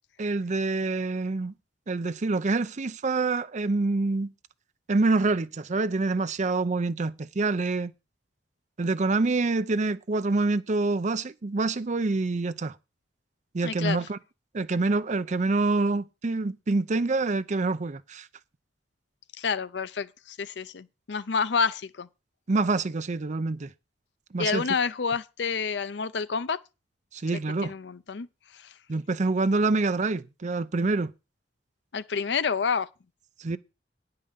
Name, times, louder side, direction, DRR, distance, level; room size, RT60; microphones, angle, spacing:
voice 1, 0.2-1.5 1.9-4.3 4.9-7.9 8.8-12.7 13.5-14.2 14.5-18.3 22.5-23.7 24.3-24.6 27.1-27.7 28.9-31.1 33.4-33.6, right 3 dB, 45° right, 0.6 m, -26 dB
voice 2, 13.6-14.0 19.4-22.1 24.4-26.6 27.6-28.3 31.9-32.9, left 5 dB, 75° left, 0.6 m, -28 dB
9.8 x 5.6 x 6.7 m
head